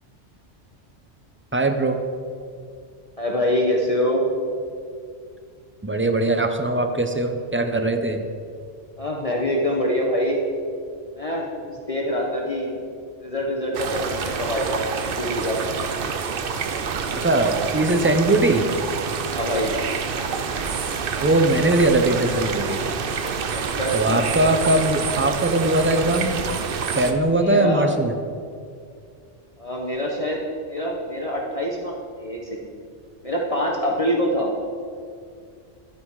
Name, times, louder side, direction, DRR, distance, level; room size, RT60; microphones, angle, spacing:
voice 1, 1.5-2.0 5.8-8.2 17.2-18.6 21.2-22.8 23.9-26.4 26.9-28.1, right 2 dB, 15° right, 6 dB, 0.5 m, -20 dB
voice 2, 3.2-4.3 9.0-10.4 11.1-12.7 13.2-15.6 19.3-19.8 23.5-24.3 27.2-27.9 29.6-30.4 30.7-32.6 33.2-34.5, equal, 30° left, -2 dB, 1.1 m, -25 dB
sound 1, 13.7-27.1, right 6 dB, 55° right, 0.8 m, -27 dB
11.0 x 9.1 x 4.8 m, 2.3 s
omnidirectional pair, 1.2 m